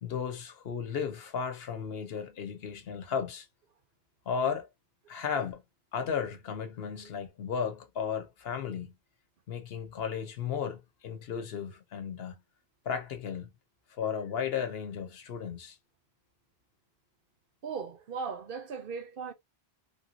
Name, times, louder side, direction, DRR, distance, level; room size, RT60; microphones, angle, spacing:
voice 1, 0.0-3.5 4.3-4.7 5.1-5.6 5.9-8.9 9.5-12.4 12.8-13.5 13.9-15.8, left 7 dB, 70° left, 1.0 m, -34 dB
voice 2, 17.6-19.3, right 5 dB, 60° right, 0.8 m, -37 dB
3.4 x 2.7 x 2.5 m
omnidirectional pair, 1.1 m